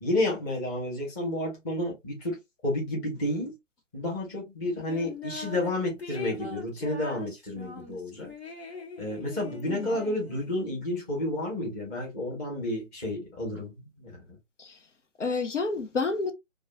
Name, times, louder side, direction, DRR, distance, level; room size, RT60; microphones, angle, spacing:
voice 1, 0.0-3.5 3.9-8.3 9.0-14.2, left 1 dB, 10° left, 0.9 m, -31 dB
sound 1, 4.9-5.7 6.0-10.6, left 5 dB, 55° left, 1.4 m, -41 dB
voice 2, 9.7-10.0 14.6-14.8 15.2-16.3, left 3 dB, 70° left, 0.9 m, -29 dB
4.7 x 2.3 x 2.2 m
figure-of-eight pair, 140°, 38 cm